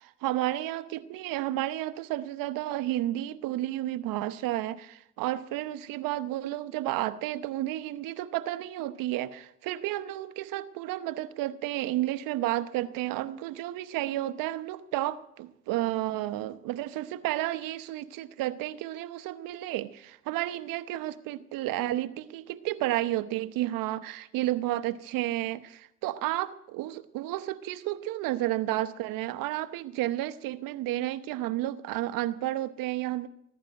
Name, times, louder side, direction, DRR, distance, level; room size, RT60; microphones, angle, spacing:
voice 1, 0.0-33.3, right 15 dB, 80° right, 0.9 m, -32 dB
15.5 x 12.0 x 6.5 m
supercardioid pair, 75°, 33 cm